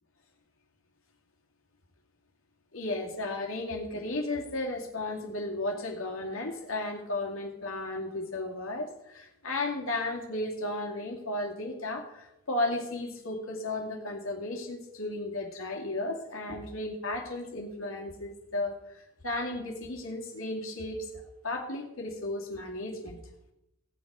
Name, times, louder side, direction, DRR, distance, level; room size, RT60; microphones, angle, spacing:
voice 1, 2.7-23.2, left 2 dB, 85° left, 1 dB, 2.4 m, -34 dB
18.0 x 7.6 x 4.9 m, 0.88 s
head